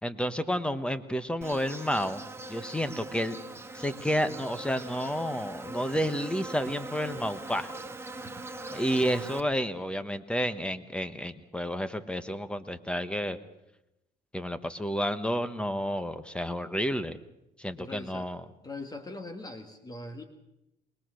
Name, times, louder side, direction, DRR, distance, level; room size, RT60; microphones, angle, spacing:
voice 1, 0.0-2.2 2.5-3.4 3.7-7.7 8.7-13.4 14.3-17.2 17.6-18.4, equal, 5° left, 11 dB, 1.2 m, -30 dB
Insect, 1.4-9.4, right 2 dB, 15° right, 1.4 m, -41 dB
voice 2, 17.8-18.3 18.6-20.2, left 2 dB, 25° left, 7 dB, 1.9 m, -41 dB
22.5 x 20.5 x 6.4 m, 0.89 s
cardioid pair, 110°, 17 cm